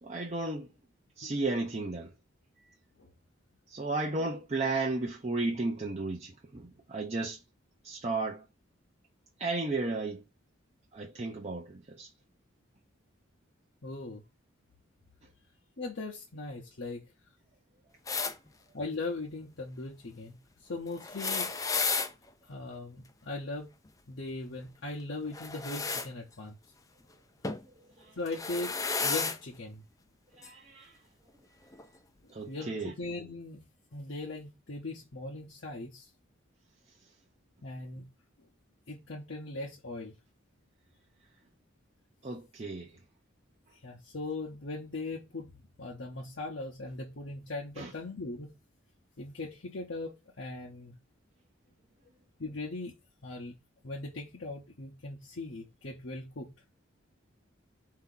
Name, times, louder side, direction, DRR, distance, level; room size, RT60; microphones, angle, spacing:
voice 1, 0.0-0.7 1.2-2.1 3.7-7.4 7.8-8.4 9.4-10.2 10.9-12.1 28.0-28.1 30.4-30.9 32.3-32.9 42.2-42.9 47.8-47.9, right 3 dB, 35° right, 0.6 m, -34 dB
voice 2, 13.8-14.2 15.8-17.0 18.7-21.9 22.5-23.7 24.1-26.6 28.2-29.8 32.5-33.6 33.9-36.1 37.6-38.1 38.9-40.1 43.8-45.5 45.8-48.5 49.2-50.9 52.4-53.0 53.2-53.5 53.8-56.5, left 2 dB, 60° left, 0.9 m, -39 dB
sound 1, 18.1-18.3 21.0-22.1 25.3-26.1 27.4-27.6 28.3-29.4 30.4-30.5 31.7-31.8, left 4 dB, 15° left, 0.4 m, -32 dB
4.6 x 2.8 x 3.8 m
head